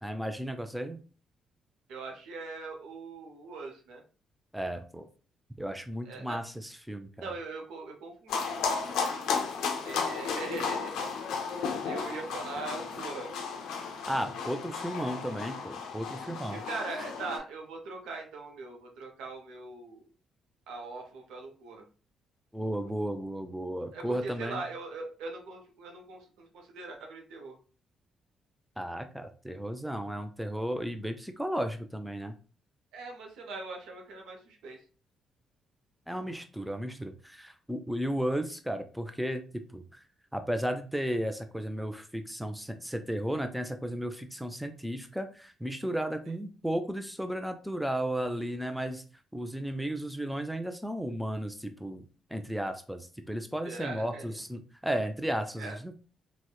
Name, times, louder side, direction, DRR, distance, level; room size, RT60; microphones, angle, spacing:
voice 1, 0.0-1.0 4.5-5.1 5.6-7.3 14.1-16.6 22.5-24.6 28.8-32.3 36.1-40.0 40.3-49.0 49.3-52.1 52.3-55.9, equal, ahead, 7 dB, 0.4 m, -34 dB
voice 2, 1.9-4.0 6.0-6.4 7.2-9.2 9.8-11.1 11.8-13.3 16.5-20.0 20.7-21.9 23.9-27.6 32.9-34.8 53.6-54.4 55.6-55.8, right 3 dB, 80° right, 2 dB, 0.6 m, -41 dB
sound 1, 8.3-17.4, left 5 dB, 75° left, 0.4 m, -34 dB
2.8 x 2.0 x 2.2 m, 0.37 s
hypercardioid pair, 50°, 0 cm